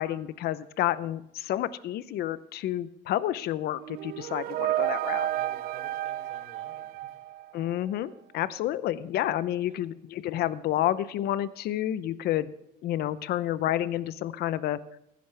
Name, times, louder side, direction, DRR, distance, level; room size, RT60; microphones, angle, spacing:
voice 1, 0.0-5.3 7.5-12.5 12.8-14.8, left 13 dB, 70° left, 16 dB, 0.7 m, -30 dB
sound 1, 3.8-7.7, right 14 dB, 65° right, 0.4 m, -31 dB
voice 2, 5.1-7.1 9.6-9.9, right 4 dB, 45° right, 5 dB, 3.3 m, -54 dB
16.0 x 10.5 x 3.4 m, 0.80 s
cardioid pair, 110°, 17 cm